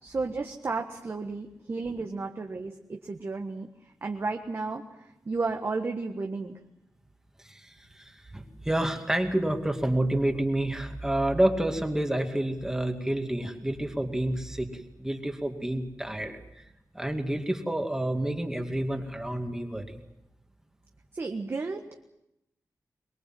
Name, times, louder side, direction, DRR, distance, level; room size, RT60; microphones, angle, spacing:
voice 1, 0.0-3.7 4.0-6.5 21.1-21.8, right 3 dB, 40° right, 3 dB, 1.5 m, -33 dB
voice 2, 7.4-16.3 16.9-20.0, right 1 dB, 10° right, 4 dB, 2.3 m, -29 dB
23.5 x 22.0 x 7.7 m, 0.86 s
wide cardioid pair, 160°, 7 cm